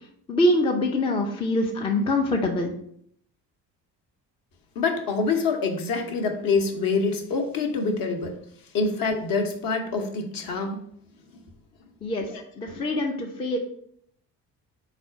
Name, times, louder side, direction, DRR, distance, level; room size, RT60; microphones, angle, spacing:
voice 1, 0.3-2.7 12.0-12.3 12.6-13.6, left 1 dB, 10° left, 2 dB, 0.3 m, -24 dB
voice 2, 4.8-8.4 8.7-10.8 12.7-12.8, left 4 dB, 45° left, 4 dB, 0.8 m, -26 dB
4.2 x 2.4 x 4.5 m, 0.68 s
figure-of-eight pair, 45°, 48 cm